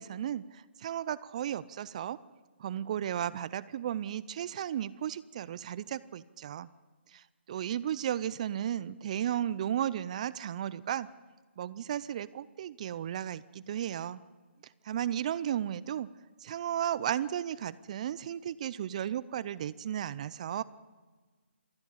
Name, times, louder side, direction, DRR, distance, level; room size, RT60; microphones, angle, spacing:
voice 1, 0.0-2.2 2.6-6.7 7.1-11.1 11.6-14.2 14.8-16.1 16.4-20.6, right 10 dB, 35° right, 17 dB, 0.5 m, -34 dB
27.0 x 11.5 x 8.6 m, 1.3 s
figure-of-eight pair, 150°, 6 cm